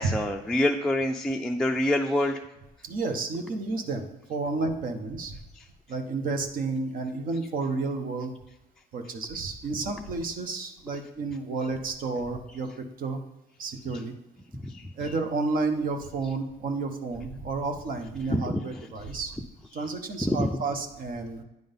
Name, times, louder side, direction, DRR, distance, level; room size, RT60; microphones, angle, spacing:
voice 1, 0.0-2.4 14.6-14.9 18.3-18.6 20.2-20.5, left 1 dB, 5° left, 1 dB, 0.4 m, -26 dB
voice 2, 2.8-5.4 5.9-8.3 8.9-13.2 13.6-14.1 15.0-19.3 19.7-21.4, right 3 dB, 55° right, 6 dB, 0.9 m, -31 dB
9.2 x 3.8 x 5.3 m, 0.95 s
cardioid pair, 110°, 17 cm